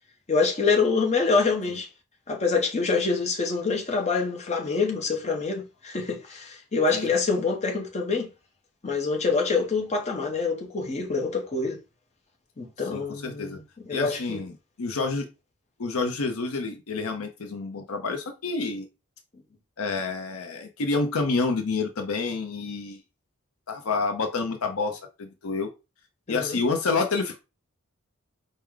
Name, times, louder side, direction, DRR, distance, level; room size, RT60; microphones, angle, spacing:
voice 1, 0.3-1.9 2.3-8.3 8.8-11.8 12.6-14.4 26.3-26.6, left 4 dB, 30° left, 0.8 m, -26 dB
voice 2, 12.9-13.6 13.9-14.5 14.8-15.3 15.8-18.9 19.8-23.0 23.7-25.7 26.3-27.4, left 4 dB, 65° left, 0.6 m, -28 dB
4.6 x 2.2 x 3.6 m
head